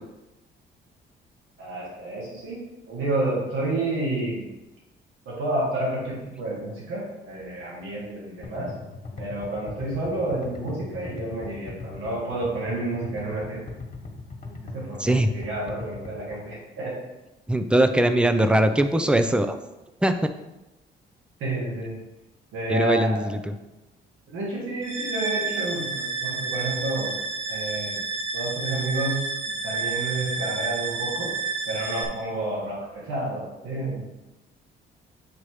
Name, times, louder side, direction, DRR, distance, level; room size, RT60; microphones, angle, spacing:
voice 1, 1.6-2.6 2.9-4.5 5.3-8.7 9.2-13.6 14.6-17.0 21.4-22.0 22.5-23.4 24.3-27.1 27.5-28.0 28.3-29.2 29.6-34.0, right 2 dB, 90° right, -5 dB, 2.1 m, -30 dB
sound 1, 8.4-16.4, left 3 dB, 40° left, 1.6 m, -39 dB
voice 2, 17.5-19.6 20.0-20.1 22.7-23.4, right 1 dB, 5° right, 9 dB, 0.5 m, -20 dB
sound 2, 24.8-32.0, right 4 dB, 65° right, 1.2 m, -30 dB
8.3 x 3.0 x 4.9 m, 0.99 s
cardioid pair, 90°, 20 cm